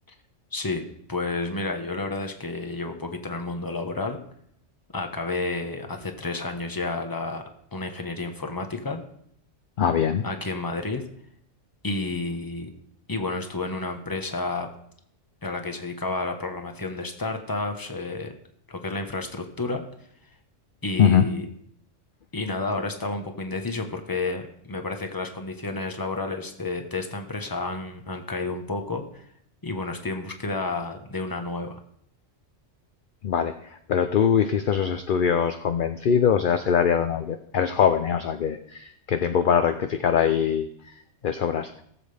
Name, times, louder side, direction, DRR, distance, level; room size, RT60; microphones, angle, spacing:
voice 1, 0.5-0.8 1.1-4.2 4.9-7.4 7.7-9.0 10.2-11.0 11.8-12.7 13.1-14.7 15.4-18.3 18.7-19.8 20.8-21.4 22.3-29.2 29.6-31.8, left 3 dB, 20° left, 5 dB, 1.1 m, -30 dB
voice 2, 9.8-10.2 21.0-21.3 33.2-40.7 41.2-41.8, left 7 dB, 55° left, 8 dB, 0.6 m, -22 dB
18.0 x 7.4 x 3.4 m, 0.68 s
omnidirectional pair, 1.3 m